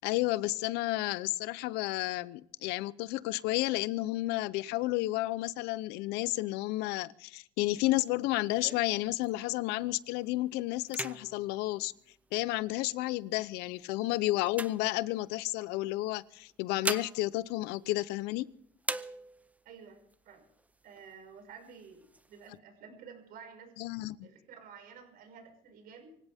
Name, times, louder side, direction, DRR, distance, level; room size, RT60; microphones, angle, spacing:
voice 1, 0.0-11.9 12.3-18.5 23.8-24.3, left 18 dB, 80° left, 0.7 m, -31 dB
sound 1, 7.6-9.8 10.2-10.5 10.8-12.7 13.4-15.5 16.4-18.5 18.8-19.7 20.1-20.2 20.5-21.1 21.6-22.5, right 2 dB, 10° right, 0.7 m, -42 dB
voice 2, 19.6-20.5 20.8-23.7 24.2-26.2, right 6 dB, 60° right, 6.0 m, -51 dB
24.5 x 16.5 x 3.6 m
cardioid pair, 125°, 17 cm